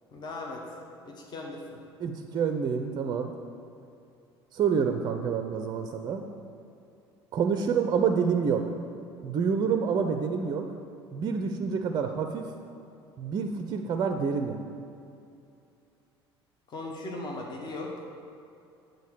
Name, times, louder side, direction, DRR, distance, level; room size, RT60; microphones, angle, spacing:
voice 1, 0.1-0.6 1.0-1.6 16.7-17.9, left 2 dB, 30° left, 0 dB, 1.1 m, -38 dB
voice 2, 2.0-3.3 4.5-6.2 7.3-8.7 9.2-10.7 11.1-12.5 13.2-14.6, right 6 dB, 30° right, 6 dB, 0.5 m, -27 dB
8.3 x 3.9 x 6.7 m, 2.6 s
figure-of-eight pair, 65°, 13 cm